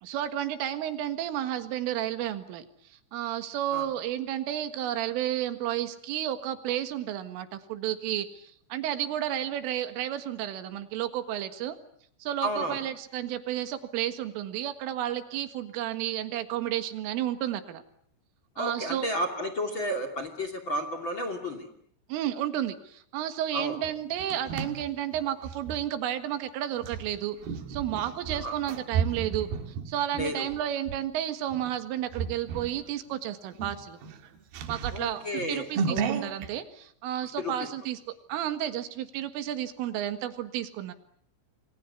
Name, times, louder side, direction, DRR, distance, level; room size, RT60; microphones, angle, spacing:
voice 1, 0.0-2.7 3.1-11.8 12.2-17.8 18.6-19.1 22.1-27.4 27.7-29.5 29.9-34.0 34.7-38.0 38.3-40.9, right 11 dB, 85° right, 10 dB, 4.3 m, -32 dB
voice 2, 12.4-12.8 18.5-21.7 23.5-23.8 28.3-28.6 30.1-30.5 34.9-36.1 37.4-37.5, equal, 30° left, 8 dB, 2.6 m, -32 dB
sound 1, 23.8-25.8 26.8-31.0 31.5-31.8 32.1-32.8 33.1-33.2 33.5-36.5, right 6 dB, 60° right, 3.3 m, -34 dB
29.0 x 23.0 x 8.2 m, 0.63 s
omnidirectional pair, 5.6 m